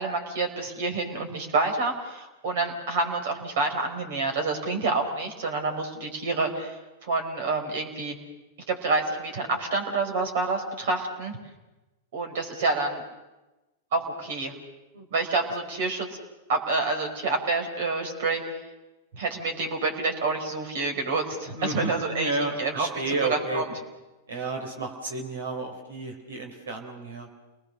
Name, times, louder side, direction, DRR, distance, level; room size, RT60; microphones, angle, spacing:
voice 1, 0.0-8.1 8.7-11.4 12.1-13.0 13.9-14.5 15.1-16.1 16.5-18.6 19.1-23.6, right 3 dB, 65° right, 4 dB, 4.8 m, -28 dB
voice 2, 21.6-23.6 24.3-27.3, right 2 dB, 85° right, 2 dB, 3.8 m, -31 dB
29.0 x 20.0 x 6.7 m, 1.1 s
hypercardioid pair, 105°, 0 cm